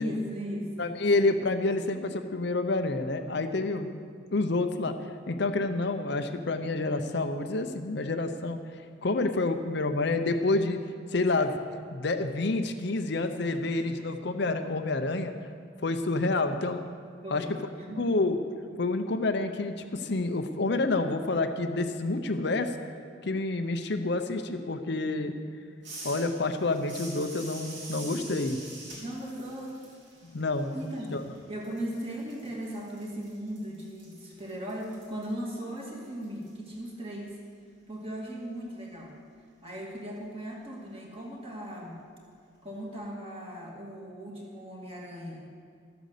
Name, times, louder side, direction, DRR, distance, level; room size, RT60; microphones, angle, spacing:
voice 1, 0.0-0.9 17.2-18.1 29.0-29.8 30.7-31.2 31.5-37.4 37.9-39.1 39.6-42.0 42.6-45.4, equal, 30° right, -2 dB, 2.2 m, -38 dB
voice 2, 0.8-4.0 4.3-4.9 5.3-8.6 9.0-10.8 11.1-11.5 11.9-15.3 15.8-16.9 17.3-17.5 18.0-22.7 23.2-25.4 26.0-28.6 30.2-30.8 31.1-31.2, left 2 dB, 55° left, 7 dB, 0.7 m, -28 dB
sound 1, 25.8-31.4 31.6-36.5, right 2 dB, 60° right, 3.4 m, -46 dB
13.0 x 9.2 x 6.7 m, 2.2 s
head